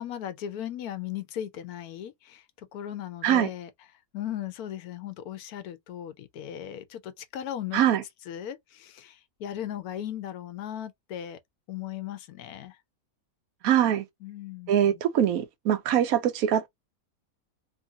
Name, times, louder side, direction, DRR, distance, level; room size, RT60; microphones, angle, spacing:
voice 1, 0.0-3.7 4.1-7.8 8.3-11.4 11.7-12.8 14.2-15.0, left 11 dB, 80° left, 1.1 m, -37 dB
voice 2, 13.6-14.0 14.7-16.7, right 10 dB, 75° right, 1.0 m, -23 dB
2.9 x 2.6 x 2.6 m
omnidirectional pair, 1.6 m